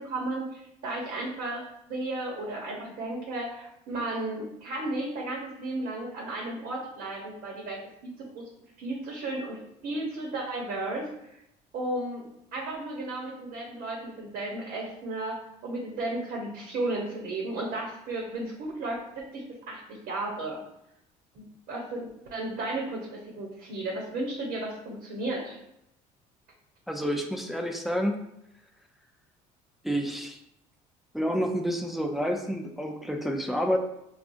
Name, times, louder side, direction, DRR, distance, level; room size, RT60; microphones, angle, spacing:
voice 1, 0.0-8.4 8.8-11.4 11.7-12.3 12.5-20.6 21.3-25.6, right 2 dB, 65° right, -2 dB, 1.0 m, -34 dB
voice 2, 26.9-28.2 29.8-30.4 31.1-33.8, equal, ahead, 3 dB, 0.5 m, -29 dB
4.8 x 2.4 x 2.6 m, 0.80 s
supercardioid pair, 75°, 16 cm